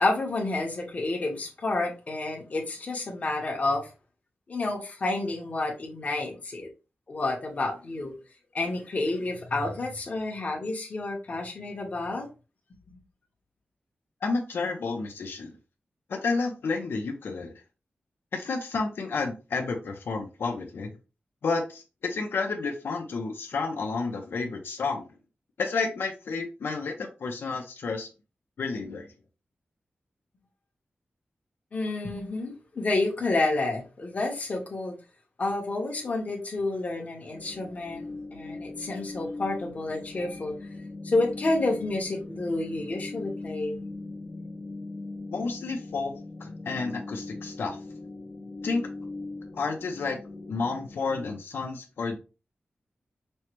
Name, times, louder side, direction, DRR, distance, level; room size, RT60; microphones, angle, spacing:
voice 1, 0.0-3.9 4.5-6.7 7.1-8.1 8.5-12.3 31.7-34.9 35.4-40.5 41.0-43.8, left 2 dB, 40° left, -1 dB, 1.1 m, -29 dB
voice 2, 14.2-15.5 16.1-17.5 18.3-21.0 21.4-25.1 25.6-28.1 28.6-29.1 45.3-47.8 48.6-48.8 49.5-50.2 50.5-52.2, left 4 dB, 85° left, 2 dB, 0.8 m, -31 dB
sound 1, 37.3-51.4, left 2 dB, 65° left, 1.1 m, -40 dB
5.4 x 2.2 x 3.0 m, 0.31 s
wide cardioid pair, 165°, 4 cm